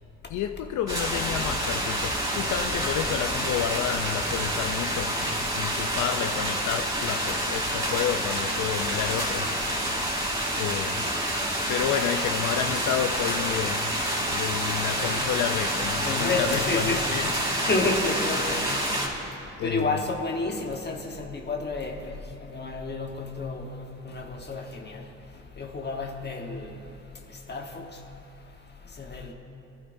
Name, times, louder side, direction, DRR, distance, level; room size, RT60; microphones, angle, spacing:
voice 1, 0.3-10.0 10.5-11.1 11.7-17.3 19.6-20.2, left 9 dB, 75° left, 7 dB, 0.5 m, -30 dB
sound 1, 0.9-19.1, right 1 dB, 15° right, 3.0 m, -28 dB
voice 2, 4.2-4.6 7.3-7.6 12.6-12.9 14.2-15.3 15.7-17.1 17.6-18.9 19.6-25.1 25.6-26.9 27.3-28.0 28.8-29.3, left 3 dB, 35° left, 2 dB, 1.2 m, -31 dB
22.5 x 11.5 x 2.6 m, 2.8 s
cardioid pair, 90°, 30 cm